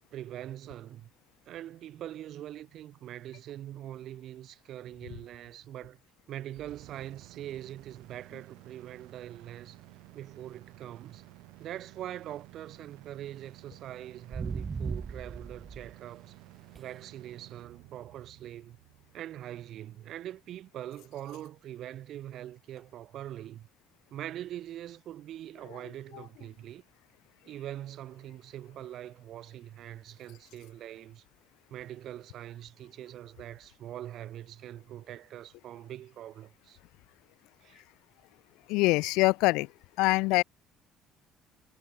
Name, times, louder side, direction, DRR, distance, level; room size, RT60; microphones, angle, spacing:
voice 1, 0.1-1.1 1.4-6.0 6.3-9.8 10.1-11.2 11.6-16.3 16.8-18.8 19.1-23.7 24.1-26.8 27.4-31.2 31.7-36.8 37.6-37.8, right 12 dB, 60° right, 1.4 m, -43 dB
sound 1, 6.5-20.5, right 22 dB, 85° right, 5.7 m, -54 dB
sound 2, 14.3-15.9 16.8-16.9 22.8-22.9, right 5 dB, 30° right, 0.5 m, -36 dB
voice 2, 38.7-39.7 40.0-40.4, left 23 dB, 85° left, 0.3 m, -24 dB
cardioid pair, 100°, 0 cm